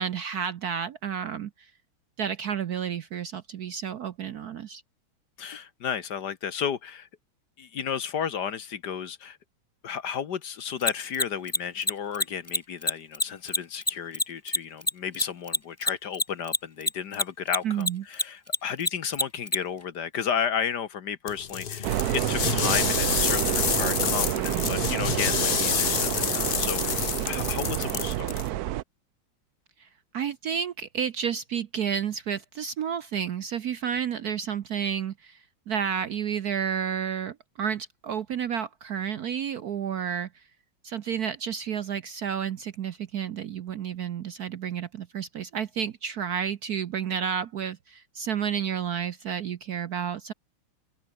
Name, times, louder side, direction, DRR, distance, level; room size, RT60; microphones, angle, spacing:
voice 1, 0.0-1.7 2.2-4.8 17.6-18.0 29.8-40.4 40.8-50.3, right 8 dB, 60° right, 1.1 m, -31 dB
voice 2, 5.4-7.1 7.6-9.4 9.8-28.4, left 8 dB, 55° left, 1.7 m, -33 dB
Mechanisms, 10.8-17.6 17.8-19.6, left 2 dB, 15° left, 0.4 m, -24 dB
sound 1, 21.3-28.5, left 7 dB, 85° left, 0.4 m, -28 dB
sound 2, 21.8-28.8, right 14 dB, 80° right, 0.8 m, -29 dB
open air
omnidirectional pair, 2.3 m